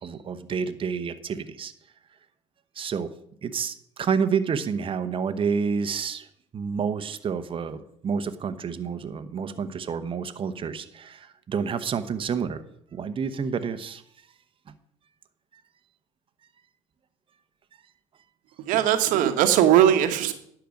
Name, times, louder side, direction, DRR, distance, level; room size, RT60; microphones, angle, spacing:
voice 1, 0.0-1.7 2.7-3.1 3.4-6.3 6.5-12.6 12.9-14.0, right 6 dB, 35° right, 10 dB, 0.9 m, -29 dB
voice 2, 18.7-20.3, right 11 dB, 65° right, 9 dB, 1.2 m, -19 dB
10.0 x 6.0 x 6.4 m, 0.70 s
hypercardioid pair, 65°, 15 cm